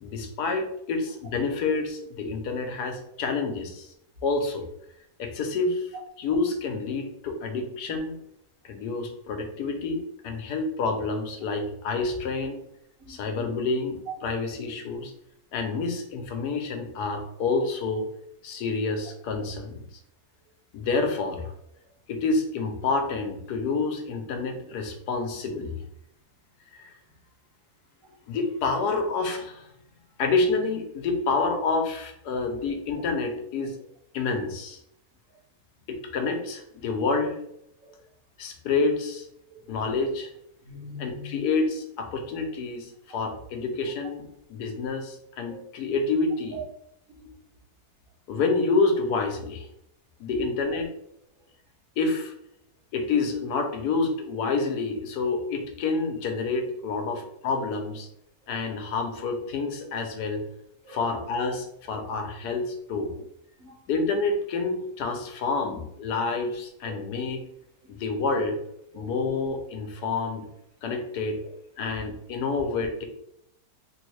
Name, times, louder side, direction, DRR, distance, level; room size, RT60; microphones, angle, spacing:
voice 1, 0.0-3.9 4.2-4.7 5.2-8.1 8.6-12.6 13.1-15.1 15.5-18.0 18.4-19.8 20.7-21.5 22.1-25.8 26.8-26.9 28.3-29.7 30.2-33.8 34.1-34.8 35.9-37.4 38.4-39.3 39.7-40.3 41.0-46.6 48.3-49.7 50.2-50.9 52.0-52.3 52.9-58.1 58.5-60.4 60.9-63.1 63.9-67.4 67.9-68.6 68.9-70.5 70.8-71.4 71.8-73.0, left 3 dB, 90° left, 4 dB, 1.2 m, -28 dB
voice 2, 40.7-41.4 45.5-45.7 47.2-47.3 57.1-57.2 60.8-61.2 62.0-62.1 63.6-63.8 66.8-67.0 68.9-69.1, left 2 dB, 55° right, -2 dB, 1.3 m, -43 dB
3.5 x 3.3 x 3.1 m, 0.76 s
omnidirectional pair, 1.7 m